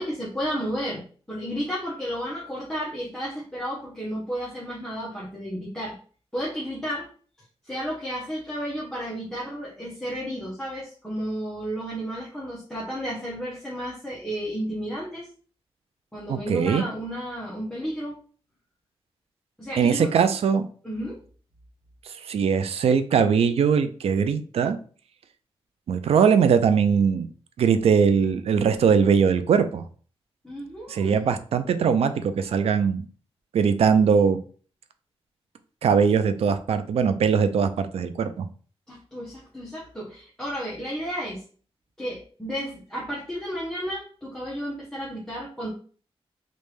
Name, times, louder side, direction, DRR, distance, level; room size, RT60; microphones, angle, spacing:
voice 1, 0.0-6.0 6.3-7.1 7.6-15.3 16.1-18.2 19.6-20.1 20.8-21.2 30.4-31.3 38.9-41.4 42.0-45.7, equal, 5° left, -7 dB, 1.0 m, -32 dB
voice 2, 16.3-16.8 19.8-20.6 22.3-24.8 25.9-27.3 27.6-29.8 30.9-33.1 33.5-34.4 35.8-38.5, right 6 dB, 75° right, 10 dB, 0.4 m, -21 dB
3.3 x 2.6 x 3.3 m, 0.42 s
wide cardioid pair, 115°, 10 cm